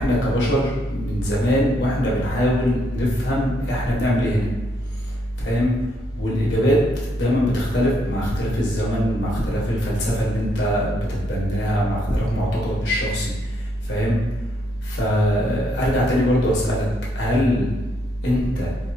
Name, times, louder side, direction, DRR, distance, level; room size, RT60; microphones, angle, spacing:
voice 1, 0.0-4.4 5.4-5.7 6.2-6.8 7.2-10.9 11.3-13.2 13.9-14.2 15.0-16.9 17.2-17.7 18.2-18.7, equal, 90° left, -5 dB, 1.2 m, -21 dB
4.3 x 2.3 x 2.6 m, 1.2 s
head